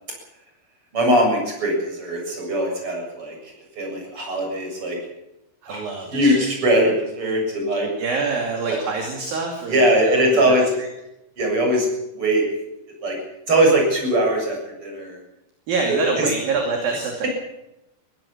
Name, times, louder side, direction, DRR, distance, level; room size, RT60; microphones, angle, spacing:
voice 1, 0.9-5.0 5.7-5.8 6.1-7.9 8.7-8.8 9.7-10.7 11.4-11.9 12.1-12.4 13.0-13.2 13.5-15.2 16.2-16.3, right 1 dB, 25° right, 1 dB, 7.9 m, -20 dB
voice 2, 5.6-6.5 8.0-10.9 15.7-17.3, right 4 dB, 55° right, 2 dB, 4.0 m, -26 dB
22.0 x 17.0 x 7.3 m, 0.89 s
omnidirectional pair, 5.5 m